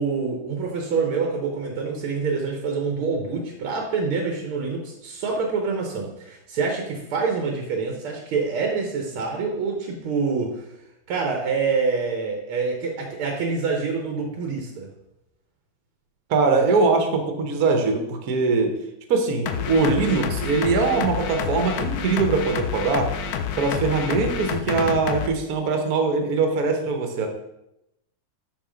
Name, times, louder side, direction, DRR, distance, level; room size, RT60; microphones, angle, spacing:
voice 1, 0.0-10.7 11.1-14.9, right 4 dB, 85° right, 1 dB, 2.0 m, -26 dB
voice 2, 16.3-18.7 19.1-23.1 23.6-27.3, right 4 dB, 50° right, 4 dB, 1.4 m, -22 dB
sound 1, 19.5-25.3, left 7 dB, 75° left, 0.8 m, -28 dB
6.2 x 5.8 x 5.1 m, 0.86 s
omnidirectional pair, 2.3 m